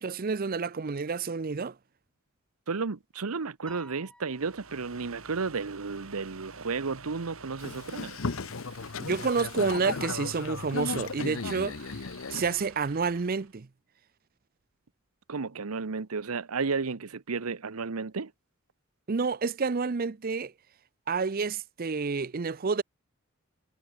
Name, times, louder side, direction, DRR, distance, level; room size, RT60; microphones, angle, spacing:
voice 1, 0.0-1.7 9.0-11.9 12.3-13.7 19.1-20.5 21.1-22.8, right 5 dB, 45° right, 0.5 m, -29 dB
voice 2, 2.7-8.2 15.3-18.3, right 4 dB, 90° right, 0.9 m, -33 dB
Piano, 3.7-5.2, left 1 dB, 5° left, 4.3 m, -54 dB
sound 1, 4.2-13.6, right 4 dB, 75° right, 6.5 m, -50 dB
Boat Water vehicle, 7.6-12.6, left 4 dB, 70° left, 0.8 m, -35 dB
head